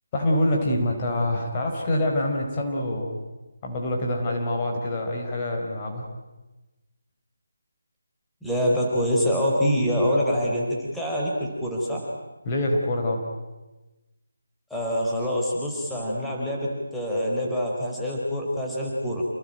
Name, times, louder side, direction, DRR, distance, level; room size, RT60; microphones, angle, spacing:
voice 1, 0.1-3.2 3.6-6.0 12.4-13.2, left 1 dB, 25° left, 1 dB, 4.4 m, -25 dB
voice 2, 8.4-12.1 14.7-19.3, equal, 5° left, -5 dB, 4.3 m, -25 dB
29.0 x 19.5 x 9.1 m, 1.1 s
figure-of-eight pair, 155°, 0 cm